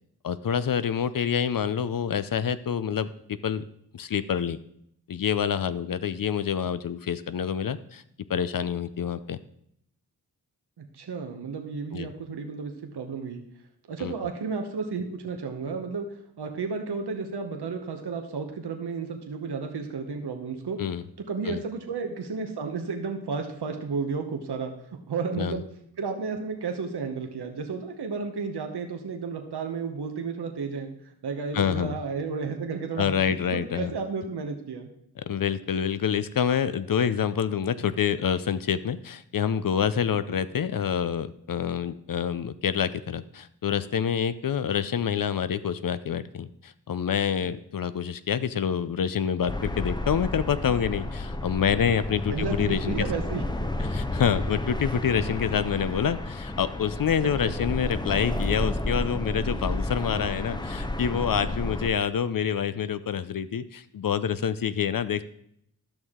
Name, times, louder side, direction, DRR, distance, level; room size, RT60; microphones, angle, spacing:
voice 1, 0.2-3.1 3.4-3.6 3.9-4.6 5.1-8.0 8.3-9.4 11.9-12.1 14.0-14.1 20.8-21.0 21.5-21.6 25.4-25.6 31.5-32.0 33.0-33.9 35.2-53.0 53.9-65.2, left 8 dB, 60° left, 14 dB, 0.5 m, -27 dB
voice 2, 10.8-13.4 13.9-20.8 21.3-25.6 26.0-33.1 33.5-34.9 52.3-53.4 57.2-57.5, right 5 dB, 85° right, 4 dB, 1.0 m, -32 dB
sound 1, 49.5-61.9, left 1 dB, 10° left, 0.7 m, -31 dB
12.0 x 6.4 x 3.7 m, 0.71 s
wide cardioid pair, 60°, 39 cm